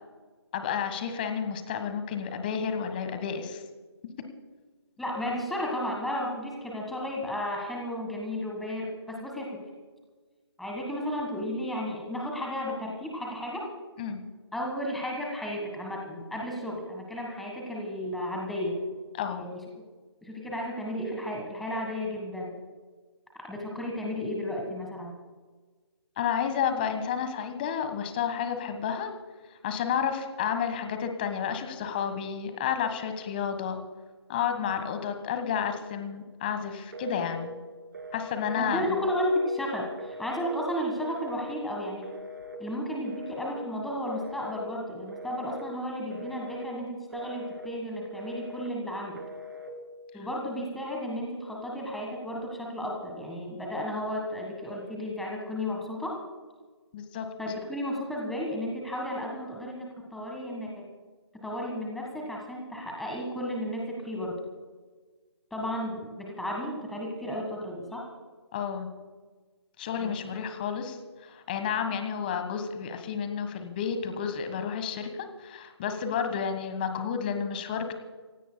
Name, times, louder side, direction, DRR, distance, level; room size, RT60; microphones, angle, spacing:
voice 1, 0.5-3.6 14.0-14.2 19.1-19.4 26.2-29.1 29.6-33.8 34.3-37.5 38.1-39.0 56.9-57.3 68.5-68.9 69.8-78.0, left 7 dB, 20° left, 7 dB, 1.4 m, -31 dB
voice 2, 5.0-9.6 10.6-13.7 14.5-18.8 19.3-19.6 20.2-22.5 23.4-25.1 38.6-42.1 42.6-49.2 50.1-56.2 57.4-60.9 61.4-64.4 65.5-68.1 70.0-70.1, left 1 dB, ahead, -1 dB, 1.5 m, -33 dB
Telephone, 36.9-37.5 37.9-38.5 39.0-39.5 40.0-40.6 41.0-41.6 42.0-42.6 43.0-43.6 44.1-44.6 45.1-45.7 46.1-46.7 47.1-47.7 48.1-48.7 49.1-49.7, left 1 dB, 40° right, 2.3 m, -42 dB
28.5 x 16.5 x 2.2 m, 1.4 s
figure-of-eight pair, 155°, 15 cm